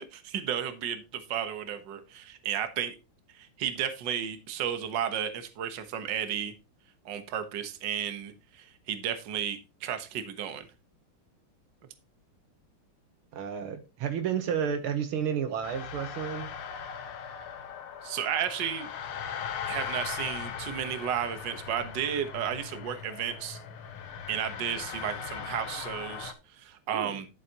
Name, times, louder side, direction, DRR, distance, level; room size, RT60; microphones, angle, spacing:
voice 1, 0.0-3.0 3.3-6.5 7.1-10.7 18.0-18.9 19.7-23.6 24.3-27.3, right 9 dB, 60° right, 1.7 m, -33 dB
voice 2, 13.3-16.5 26.9-27.2, right 8 dB, 80° right, 1.9 m, -31 dB
sound 1, 15.6-26.3, left 7 dB, 80° left, 1.9 m, -39 dB
11.0 x 8.4 x 2.9 m
omnidirectional pair, 2.4 m